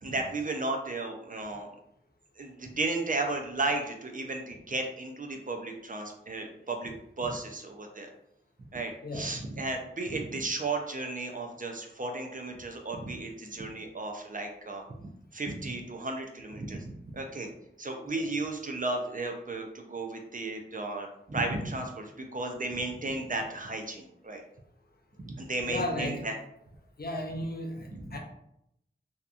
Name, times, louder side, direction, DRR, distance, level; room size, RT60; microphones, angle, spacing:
voice 1, 0.0-1.7 2.4-8.1 8.7-17.5 17.8-24.4 25.2-26.3 27.9-28.1, right 2 dB, 40° right, 3 dB, 0.5 m, -34 dB
voice 2, 25.7-26.2 27.0-28.2, left 1 dB, 50° left, 1 dB, 0.5 m, -34 dB
2.8 x 2.2 x 2.4 m, 0.78 s
wide cardioid pair, 40°, 20 cm